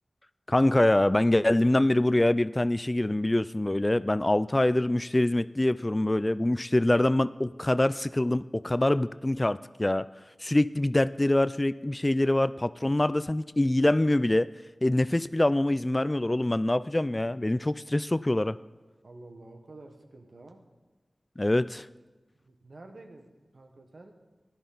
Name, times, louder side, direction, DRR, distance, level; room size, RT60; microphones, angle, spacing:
voice 1, 0.5-10.1 10.4-14.5 14.8-18.6 21.4-21.9, left 1 dB, 25° left, 16 dB, 0.3 m, -24 dB
voice 2, 19.0-20.7 22.3-24.2, right 2 dB, 70° right, 4 dB, 1.4 m, -50 dB
15.0 x 11.0 x 4.0 m, 1.2 s
wide cardioid pair, 50°, 0 cm